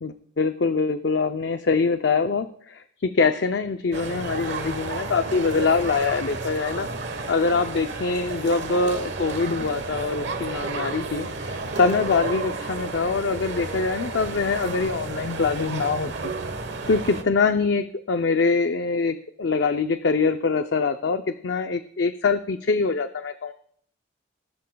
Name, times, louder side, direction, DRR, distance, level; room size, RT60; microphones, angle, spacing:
voice 1, 0.0-6.9 7.3-16.3 16.9-23.5, left 4 dB, 60° left, 8 dB, 0.5 m, -24 dB
sound 1, 3.9-17.2, right 3 dB, 65° right, 1.2 m, -32 dB
18.0 x 12.5 x 2.3 m, 0.62 s
head